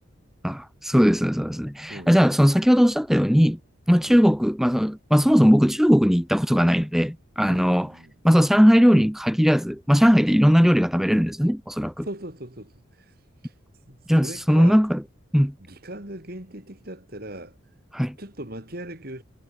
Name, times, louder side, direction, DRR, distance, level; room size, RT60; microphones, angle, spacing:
voice 1, 0.4-3.6 3.9-7.9 8.2-12.1 14.1-15.0 15.3-15.5 17.9-18.2, equal, ahead, 1.9 m, -19 dB
voice 2, 7.5-8.1 12.0-12.7 13.0-13.1 13.4-13.5 13.9-14.8 15.6-17.6 18.2-19.2, right 1 dB, 45° right, 4.1 m, -39 dB
head